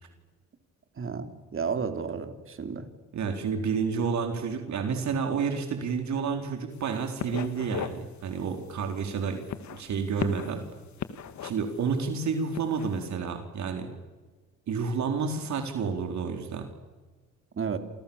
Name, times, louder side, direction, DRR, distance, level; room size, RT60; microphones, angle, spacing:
voice 1, 1.0-2.9 17.5-17.8, right 6 dB, 45° right, 8 dB, 3.5 m, -32 dB
voice 2, 3.1-9.4 9.7-10.6 11.4-13.9 14.7-16.7, right 5 dB, 65° right, 5 dB, 4.1 m, -30 dB
sound 1, 6.7-6.9 7.2-8.0 8.4-8.6 9.4-10.6 11.0-11.8 12.4-12.9, left 9 dB, 70° left, 2.2 m, -36 dB
28.5 x 27.5 x 7.2 m, 1.3 s
cardioid pair, 90°, 30 cm